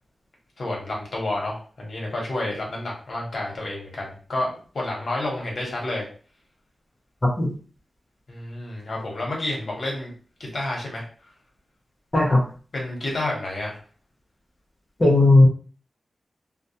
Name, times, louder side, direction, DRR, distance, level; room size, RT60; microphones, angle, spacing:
voice 1, 0.6-6.1 8.3-10.1 10.4-11.0 12.7-13.8, left 1 dB, 65° left, -2 dB, 1.0 m, -30 dB
voice 2, 15.0-15.5, left 2 dB, 30° left, -1 dB, 0.6 m, -15 dB
2.3 x 2.1 x 2.7 m, 0.40 s
wide cardioid pair, 75°, 0 cm